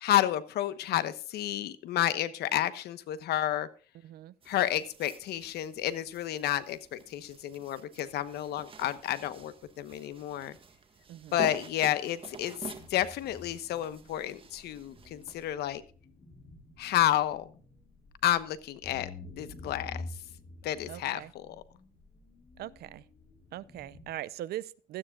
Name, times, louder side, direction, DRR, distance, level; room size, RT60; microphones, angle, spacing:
voice 1, 0.0-3.7 4.5-10.6 11.3-15.8 16.8-17.5 18.2-19.1 19.4-20.0 20.6-21.6, left 12 dB, 75° left, 1.1 m, -30 dB
voice 2, 4.0-4.3 11.1-11.4 20.9-21.3 22.6-23.0 23.5-25.0, right 13 dB, 70° right, 0.7 m, -40 dB
sound 1, 4.4-15.5, right 5 dB, 30° right, 1.7 m, -48 dB
sound 2, 12.7-24.2, left 2 dB, 35° left, 4.4 m, -49 dB
16.5 x 13.0 x 2.4 m
cardioid pair, 110°, 17 cm